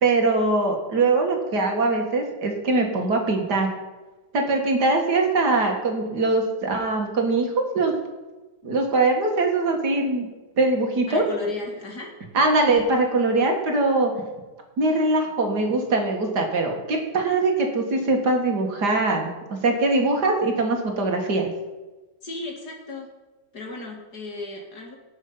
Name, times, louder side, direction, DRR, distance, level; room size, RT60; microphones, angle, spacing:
voice 1, 0.0-3.7 4.3-7.9 8.6-11.2 12.3-14.1 14.8-21.5, right 2 dB, 70° right, 2 dB, 2.5 m, -22 dB
voice 2, 11.1-12.1 22.2-23.1 23.5-25.0, left 2 dB, 65° left, 0 dB, 2.9 m, -34 dB
18.0 x 6.4 x 5.7 m, 1.1 s
omnidirectional pair, 1.8 m